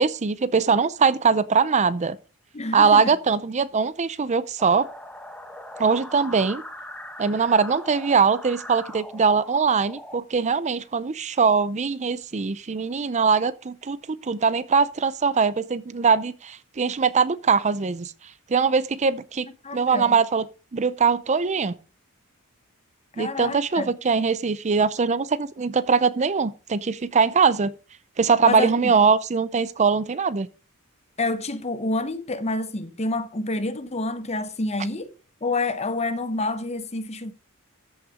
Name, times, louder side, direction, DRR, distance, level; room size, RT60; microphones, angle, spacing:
voice 1, 0.0-2.2 2.7-4.9 5.8-6.6 7.2-18.1 18.5-19.5 19.7-20.5 20.7-21.8 23.2-27.7 28.2-30.5, right 5 dB, 35° right, 0.5 m, -21 dB
voice 2, 2.5-3.1 19.6-20.2 23.2-23.9 28.4-28.9 31.2-35.2 35.4-37.3, left 2 dB, 30° left, 0.9 m, -28 dB
sound 1, 4.6-10.2, left 1 dB, 5° left, 1.1 m, -40 dB
14.0 x 5.8 x 5.0 m
head